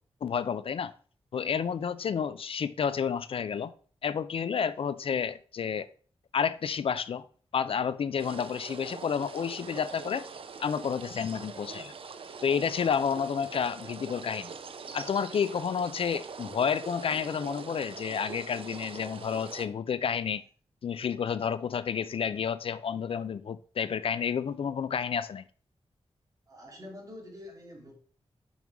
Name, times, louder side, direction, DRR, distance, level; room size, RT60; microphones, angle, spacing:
voice 1, 0.2-0.9 1.3-3.7 4.0-5.9 6.3-7.3 7.5-10.2 10.6-11.9 12.4-14.5 14.9-20.4 20.8-25.4, left 7 dB, 65° left, 0.4 m, -30 dB
sound 1, 8.2-19.7, right 5 dB, 60° right, 0.6 m, -43 dB
voice 2, 26.5-27.9, left 1 dB, 35° right, 2.6 m, -46 dB
6.2 x 5.5 x 4.6 m
wide cardioid pair, 170°, 10 cm